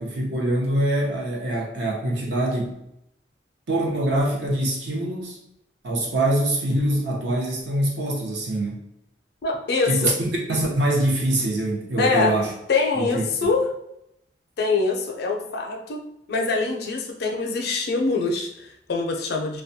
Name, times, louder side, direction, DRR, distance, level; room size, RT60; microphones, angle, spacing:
voice 1, 0.0-2.7 3.7-5.4 5.8-8.8 9.9-10.1 10.5-12.5 13.0-13.5, right 1 dB, 70° right, -2 dB, 0.7 m, -24 dB
voice 2, 9.4-10.1 12.0-12.4 12.7-13.7 14.6-16.0 16.3-19.6, left 3 dB, 60° left, 1 dB, 0.4 m, -24 dB
2.3 x 2.1 x 2.6 m, 0.79 s
head